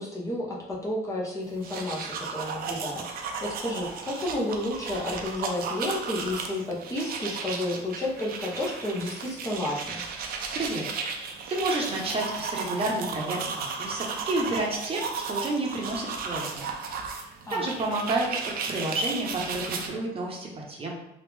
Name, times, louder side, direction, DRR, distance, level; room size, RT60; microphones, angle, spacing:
voice 1, 0.0-10.0 17.4-17.7, left 1 dB, 20° left, -4 dB, 0.8 m, -31 dB
sound 1, 1.5-19.9, right 5 dB, 60° right, 0.5 m, -35 dB
voice 2, 10.5-10.8 11.2-13.5 13.8-16.7 17.1-20.9, right 2 dB, 35° right, -1 dB, 0.8 m, -30 dB
3.1 x 2.4 x 3.5 m, 0.82 s
cardioid pair, 110°, 17 cm